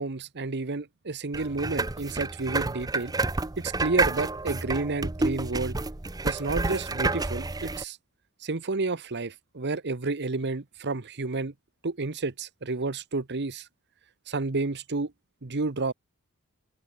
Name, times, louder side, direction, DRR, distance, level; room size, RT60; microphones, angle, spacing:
voice 1, 0.0-3.1 3.6-5.8 6.2-8.0 8.4-11.5 11.8-13.7 14.3-15.1 15.4-15.9, right 3 dB, 50° right, 1.1 m, -30 dB
sound 1, 1.3-7.8, right 3 dB, 15° right, 0.7 m, -29 dB
open air
head